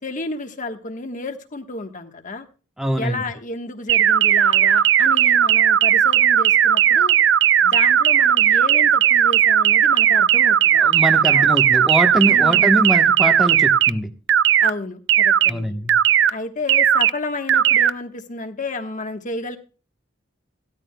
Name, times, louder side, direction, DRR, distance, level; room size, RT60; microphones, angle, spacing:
voice 1, 0.0-2.5 3.0-7.1 7.6-10.8 11.3-11.5 12.3-12.7 14.6-15.8 16.3-19.6, left 3 dB, 45° left, 6 dB, 1.3 m, -31 dB
voice 2, 2.8-3.2 10.8-14.1 15.5-15.9, equal, ahead, 5 dB, 1.1 m, -23 dB
sound 1, 3.9-13.9 14.3-14.7 15.1-15.5 15.9-16.3 16.7-17.1 17.5-17.9, right 10 dB, 70° right, 0.5 m, -16 dB
17.5 x 13.0 x 2.2 m, 0.34 s
head